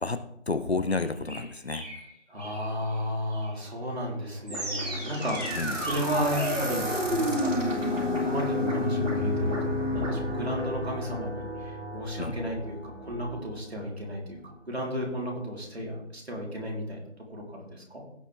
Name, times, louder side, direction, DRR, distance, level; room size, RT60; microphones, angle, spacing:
voice 1, 0.0-1.9 5.5-5.8 12.2-12.4, left 3 dB, 60° left, 11 dB, 0.8 m, -30 dB
sound 1, 0.9-3.6 4.7-7.0, equal, 15° left, 1.9 m, -44 dB
voice 2, 2.3-17.0 17.3-18.0, equal, 55° right, -2 dB, 3.9 m, -33 dB
sound 2, 4.5-13.6, left 1 dB, 80° right, 3.6 m, -30 dB
16.5 x 6.2 x 3.5 m, 0.78 s
figure-of-eight pair, 180°, 37 cm